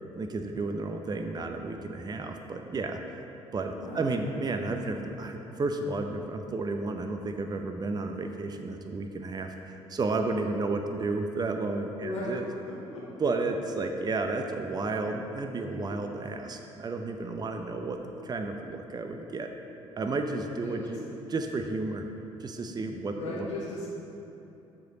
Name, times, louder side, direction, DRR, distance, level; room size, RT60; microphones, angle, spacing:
voice 1, 0.1-3.2 3.5-12.5 13.2-19.5 20.0-21.0 21.3-22.1 22.4-23.5, right 3 dB, 25° right, 5 dB, 0.7 m, -32 dB
voice 2, 3.7-4.1 12.0-12.3 12.6-13.0 20.6-20.9 23.2-23.9, left 2 dB, 85° left, -9 dB, 1.3 m, -37 dB
13.5 x 5.0 x 4.0 m, 2.8 s
figure-of-eight pair, 50°, 16 cm